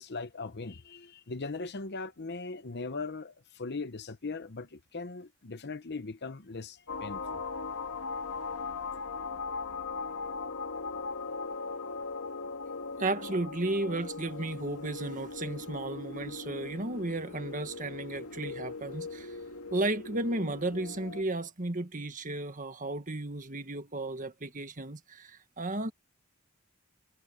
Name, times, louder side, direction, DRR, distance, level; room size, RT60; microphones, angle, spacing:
voice 1, 0.0-7.4, left 3 dB, 50° left, 0.9 m, -39 dB
sound 1, 6.9-21.2, left 4 dB, 70° left, 2.7 m, -39 dB
voice 2, 13.0-19.4 19.7-25.9, right 2 dB, 35° right, 1.7 m, -34 dB
head